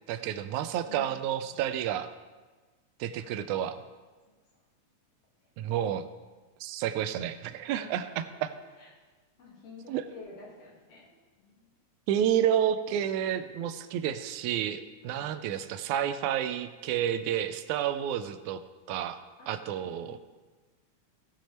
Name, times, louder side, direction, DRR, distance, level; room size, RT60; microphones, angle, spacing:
voice 1, 0.1-2.1 3.0-3.8 5.6-6.1 6.6-8.5 9.9-10.0 12.1-18.6 18.9-19.2 19.5-20.2, right 10 dB, 80° right, 11 dB, 1.9 m, -30 dB
voice 2, 0.8-1.6 3.1-3.5 4.5-4.6 7.7-8.0 8.5-8.9 9.4-11.1 11.4-11.7 15.0-15.4 19.4-20.2, left 3 dB, 50° left, -3 dB, 3.4 m, -51 dB
16.5 x 6.2 x 4.3 m, 1.3 s
omnidirectional pair, 3.6 m